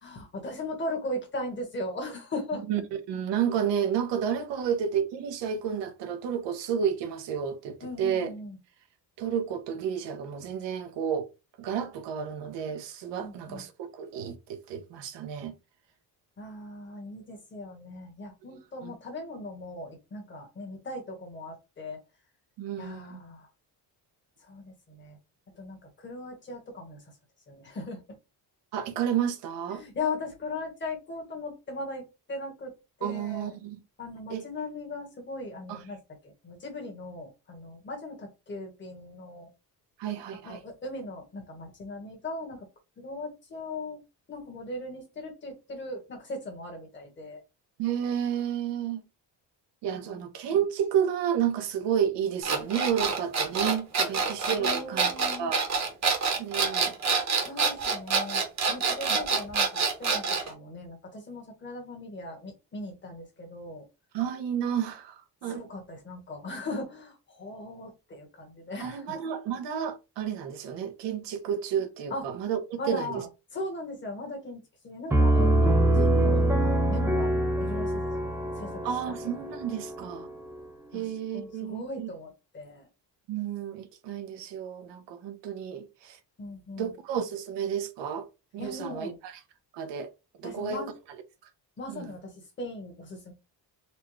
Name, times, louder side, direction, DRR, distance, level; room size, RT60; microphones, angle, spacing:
voice 1, 0.0-2.7 7.8-8.6 13.2-13.7 16.4-22.0 22.8-23.5 24.4-25.2 25.5-27.1 27.5-28.2 29.7-32.7 33.0-33.5 34.0-39.5 40.4-42.7 43.0-44.0 44.3-47.4 50.0-50.2 54.0-55.5 57.4-63.9 65.4-69.2 72.1-72.2 72.8-73.3 73.5-79.4 80.9-81.1 81.3-82.9 86.4-86.9 88.6-89.2 90.4-90.9 91.8-93.3, left 2 dB, 25° left, 1.3 m, -38 dB
voice 2, 3.1-8.3 9.2-11.3 11.6-15.5 18.8-18.9 22.6-23.2 28.7-29.8 33.0-33.8 34.3-34.4 35.7-35.8 40.0-40.6 47.8-49.1 49.8-55.1 55.4-55.6 56.4-56.9 59.1-59.2 64.1-65.6 68.8-73.2 78.8-80.3 80.9-82.1 83.3-86.2 86.8-88.3 88.5-89.3 89.7-90.1 90.4-90.8 91.9-92.1, right 8 dB, 90° right, 0.9 m, -31 dB
sound 1, 52.4-60.5, right 5 dB, 40° right, 1.0 m, -26 dB
Piano, 75.1-80.6, right 1 dB, 5° right, 0.5 m, -24 dB
4.3 x 2.3 x 3.1 m
cardioid pair, 150°, 41 cm